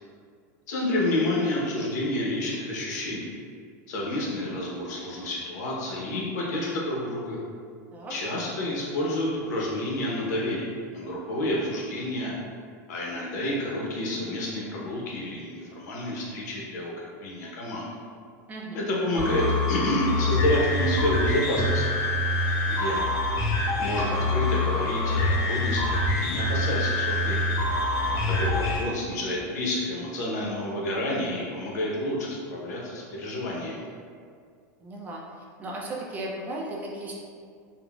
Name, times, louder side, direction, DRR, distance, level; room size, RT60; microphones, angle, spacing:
voice 1, 0.7-3.3 3.9-7.4 8.1-12.3 12.9-16.9 17.2-17.9 18.7-22.0 22.7-23.1 23.8-27.6 28.3-33.9, left 1 dB, 80° left, -4 dB, 0.7 m, -29 dB
sound 1, 19.2-28.8, left 2 dB, 35° left, 0.6 m, -25 dB
voice 2, 34.8-35.2 35.6-37.1, right 1 dB, 20° right, -3 dB, 0.3 m, -36 dB
3.7 x 2.0 x 2.2 m, 2.2 s
supercardioid pair, 155°, 9 cm